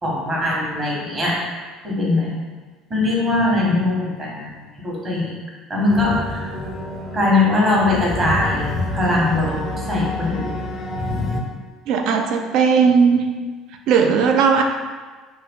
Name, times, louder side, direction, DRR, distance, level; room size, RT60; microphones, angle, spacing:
voice 1, 0.0-1.4 1.8-2.3 2.9-5.3 5.7-6.5 7.1-10.5, left 2 dB, 35° right, -4 dB, 1.1 m, -21 dB
sound 1, 5.9-11.4, left 2 dB, 35° left, 0.4 m, -28 dB
voice 2, 11.9-13.3 13.9-14.6, right 6 dB, 65° right, 4 dB, 0.3 m, -17 dB
2.5 x 2.3 x 3.5 m, 1.4 s
supercardioid pair, 80°, 0 cm